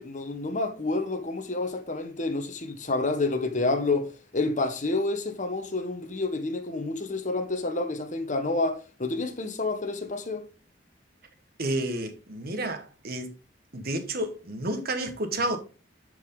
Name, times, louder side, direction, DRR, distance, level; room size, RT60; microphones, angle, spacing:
voice 1, 0.0-10.4, left 2 dB, 40° left, 1.3 m, -29 dB
voice 2, 11.6-13.3 13.7-15.6, right 1 dB, 55° right, 1.5 m, -30 dB
10.5 x 5.2 x 3.9 m
head